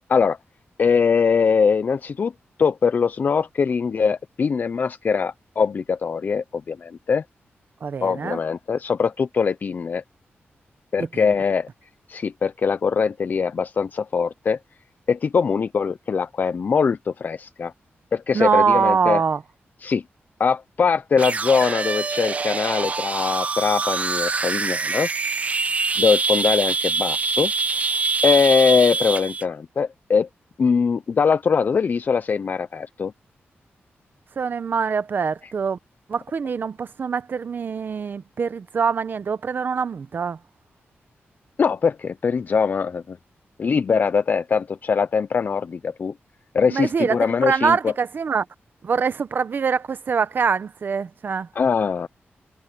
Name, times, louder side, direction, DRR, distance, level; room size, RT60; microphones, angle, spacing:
voice 1, 0.8-2.3 2.6-7.2 8.0-10.0 10.9-11.7 12.1-14.6 15.1-17.7 18.1-19.2 19.8-20.0 20.4-25.1 26.0-30.3 30.6-33.1 35.4-35.5 41.6-43.2 43.6-46.1 46.5-47.9 51.5-52.1, left 5 dB, 45° left, 0.4 m, -22 dB
voice 2, 7.8-8.4 11.1-11.2 18.3-19.4 34.4-35.8 36.1-40.4 46.7-47.2 47.4-48.4 48.8-51.5, right 6 dB, 50° right, 0.8 m, -23 dB
sound 1, 21.2-29.4, right 4 dB, 35° right, 0.4 m, -24 dB
wide cardioid pair, 155°, 4 cm